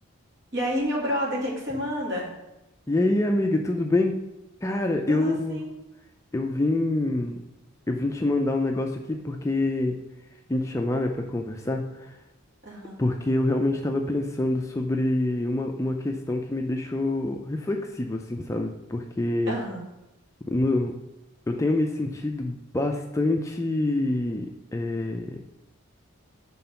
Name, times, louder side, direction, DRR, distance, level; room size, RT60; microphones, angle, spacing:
voice 1, 0.5-2.3 5.1-5.7 12.6-13.0 19.5-19.9, equal, 55° right, -4 dB, 2.0 m, -29 dB
voice 2, 2.9-4.2 4.6-5.6 6.3-7.4 7.9-10.0 10.5-12.2 13.0-19.5 20.5-20.9 21.5-24.5 24.7-25.4, left 2 dB, 15° left, 3 dB, 0.3 m, -26 dB
5.9 x 3.8 x 5.5 m, 0.94 s
head